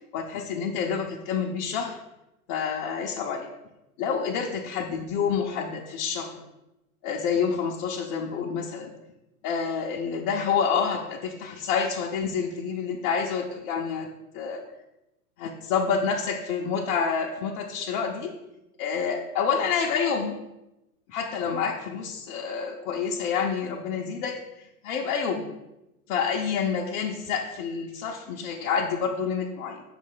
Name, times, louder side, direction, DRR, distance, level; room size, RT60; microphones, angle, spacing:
voice 1, 0.1-2.0 2.5-3.5 4.0-6.4 7.0-8.9 9.4-14.1 14.3-14.6 15.4-18.3 18.8-20.4 21.1-24.4 24.8-25.5 26.1-29.8, left 6 dB, 40° left, -3 dB, 0.7 m, -28 dB
5.9 x 3.3 x 5.5 m, 0.94 s
hypercardioid pair, 125°, 44 cm